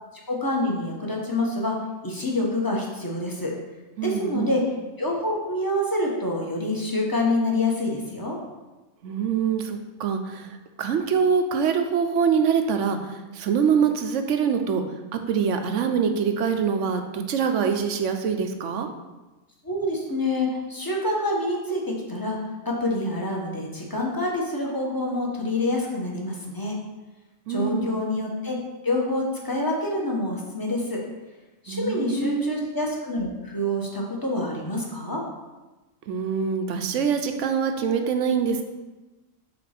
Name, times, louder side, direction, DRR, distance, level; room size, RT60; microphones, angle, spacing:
voice 1, 0.3-1.7 2.0-3.5 4.0-4.6 5.0-8.4 19.6-22.4 22.6-26.8 27.5-28.6 28.8-31.0 31.6-35.2, left 1 dB, 15° left, -2 dB, 1.1 m, -26 dB
voice 2, 4.0-4.5 9.0-10.5 10.8-14.8 15.1-18.9 27.5-28.0 31.7-32.6 36.1-38.6, right 6 dB, 70° right, 6 dB, 1.0 m, -24 dB
5.9 x 4.3 x 5.8 m, 1.1 s
omnidirectional pair, 1.4 m